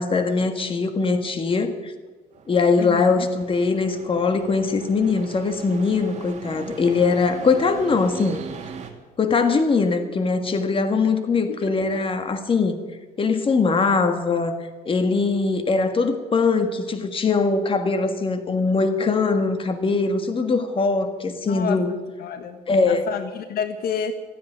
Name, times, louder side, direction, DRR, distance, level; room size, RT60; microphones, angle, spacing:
voice 1, 0.0-1.9 2.5-8.4 9.2-12.8 13.2-14.6 14.9-21.9 22.7-23.1, left 4 dB, 30° left, 8 dB, 1.7 m, -21 dB
sound 1, 2.3-8.9, right 5 dB, 45° right, 2.3 m, -39 dB
voice 2, 2.8-3.3 11.5-11.6 21.5-21.8 22.2-22.6 22.9-24.1, left 8 dB, 65° left, 9 dB, 1.3 m, -29 dB
14.5 x 10.0 x 9.2 m, 1.2 s
cardioid pair, 110°, 17 cm